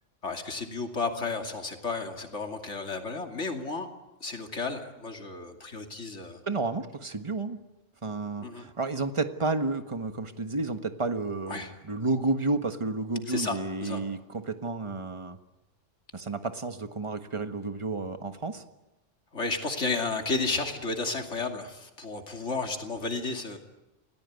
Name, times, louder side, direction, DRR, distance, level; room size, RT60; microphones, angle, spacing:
voice 1, 0.2-3.9 4.2-6.4 8.4-8.7 11.5-11.7 13.3-14.0 19.3-23.6, left 3 dB, 90° left, 4 dB, 3.0 m, -32 dB
voice 2, 6.5-7.6 8.0-15.4 16.1-18.6, right 3 dB, 25° right, 8 dB, 1.5 m, -31 dB
28.5 x 18.5 x 9.4 m, 0.99 s
omnidirectional pair, 1.2 m